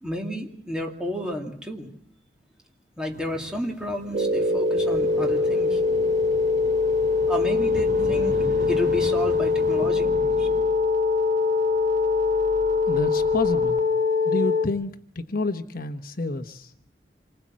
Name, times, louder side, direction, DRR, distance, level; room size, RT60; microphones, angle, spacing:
voice 1, 0.0-1.9 3.0-5.8 7.3-10.5, equal, 5° right, 2 dB, 2.6 m, -32 dB
sound 1, 3.1-9.9, right 1 dB, 75° right, 2.2 m, -41 dB
sound 2, 4.1-14.7, left 4 dB, 45° right, 1.6 m, -22 dB
sound 3, 4.9-10.7, right 1 dB, 20° left, 5.8 m, -40 dB
voice 2, 12.9-13.8 14.2-16.7, left 2 dB, 55° left, 8 dB, 1.1 m, -29 dB
27.0 x 20.5 x 7.5 m, 0.67 s
head